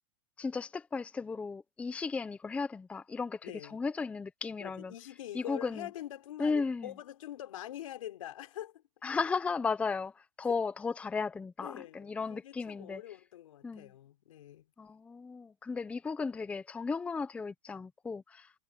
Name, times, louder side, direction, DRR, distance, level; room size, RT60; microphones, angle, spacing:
voice 1, 0.4-4.9 5.3-5.9 6.4-6.9 9.0-13.0 13.6-13.9 14.8-18.5, left 4 dB, 10° left, 0.6 m, -35 dB
voice 2, 3.4-3.8 4.6-8.8 11.6-14.7, left 12 dB, 85° left, 4.1 m, -44 dB
supercardioid pair, 155°, 17 cm